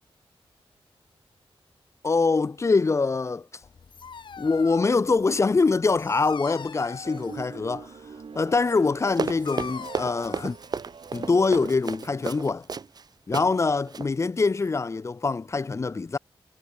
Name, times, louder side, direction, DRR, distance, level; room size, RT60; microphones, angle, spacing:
voice 1, 2.0-3.5 4.4-7.9 8.3-10.6 11.1-12.7 13.3-16.2, left 4 dB, 30° left, 0.5 m, -24 dB
Dog, 3.6-11.5, left 6 dB, 55° left, 1.0 m, -43 dB
sound 1, 7.0-12.4, right 5 dB, 60° right, 4.6 m, -44 dB
Run, 9.1-13.0 13.3-13.5 13.9-14.1, right 5 dB, 45° right, 0.7 m, -32 dB
wide cardioid pair, 140°, 10 cm